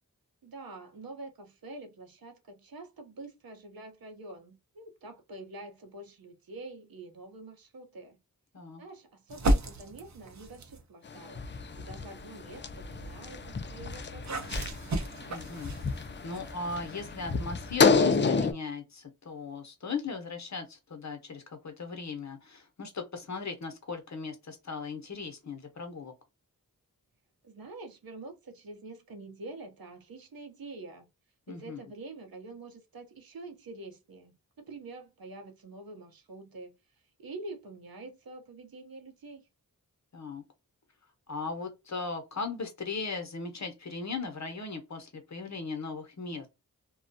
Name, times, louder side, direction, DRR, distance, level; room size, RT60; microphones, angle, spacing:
voice 1, 0.4-8.2 8.8-11.5 11.7-14.7 27.4-31.1 31.5-36.7 37.2-39.4, right 2 dB, 80° right, 0.8 m, -46 dB
sound 1, 9.3-10.9 11.5-17.8, right 1 dB, 50° right, 0.7 m, -35 dB
sound 2, 11.1-18.5, left 5 dB, 35° left, 0.4 m, -29 dB
voice 2, 15.3-26.1 31.5-31.8 40.1-40.4 41.3-46.5, left 4 dB, 50° left, 0.8 m, -38 dB
2.3 x 2.1 x 2.6 m
wide cardioid pair, 60°, 36 cm